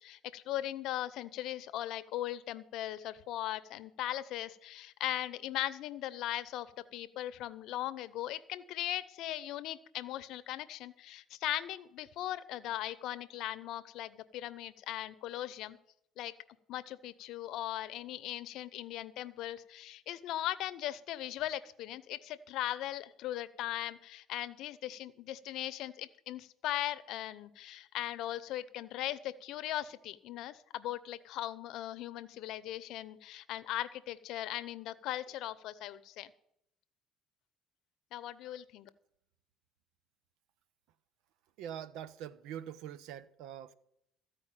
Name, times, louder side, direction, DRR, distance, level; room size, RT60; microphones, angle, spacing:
voice 1, 0.0-15.8 16.2-16.3 16.7-36.3 38.1-38.9, left 13 dB, 75° left, 0.7 m, -39 dB
voice 2, 41.6-43.7, right 10 dB, 80° right, 0.7 m, -44 dB
14.5 x 4.8 x 8.8 m
supercardioid pair, 90°, 0 cm